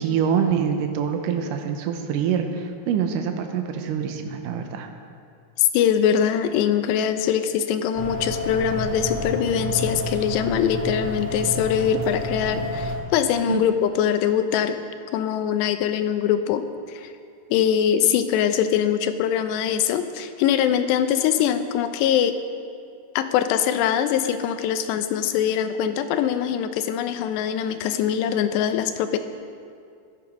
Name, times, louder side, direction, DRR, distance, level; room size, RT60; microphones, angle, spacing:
voice 1, 0.0-4.9 13.5-13.6, right 7 dB, 85° right, 5 dB, 1.9 m, -25 dB
voice 2, 5.6-14.8 15.1-16.6 16.9-17.1 17.5-22.4 23.2-29.2, left 9 dB, 80° left, 9 dB, 2.8 m, -22 dB
sound 1, 7.9-12.9, equal, 45° right, 2.3 m, -29 dB
14.5 x 12.0 x 5.2 m, 2.4 s
omnidirectional pair, 5.0 m